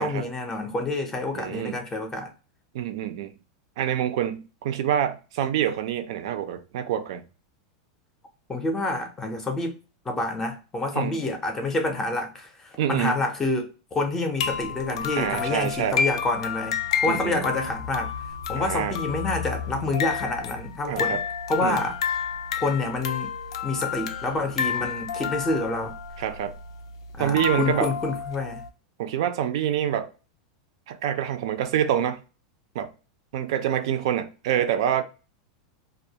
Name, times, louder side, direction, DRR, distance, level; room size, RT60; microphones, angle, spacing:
voice 1, 0.0-2.3 8.5-9.8 10.1-18.1 18.5-21.2 21.5-22.0 22.6-23.3 23.6-26.0 27.2-28.6, left 2 dB, 15° left, 0.5 m, -28 dB
voice 2, 1.3-1.8 2.7-3.3 3.8-7.3 10.9-11.2 12.8-13.2 15.2-16.0 17.1-17.5 18.5-18.9 20.9-21.2 21.6-21.8 26.2-26.6 27.2-27.9 29.0-30.1 30.9-32.2 32.8-32.9 33.3-35.0, right 10 dB, 65° right, 0.4 m, -26 dB
sound 1, 14.4-28.7, left 7 dB, 80° left, 0.4 m, -31 dB
2.2 x 2.1 x 2.7 m
supercardioid pair, 150°, 3 cm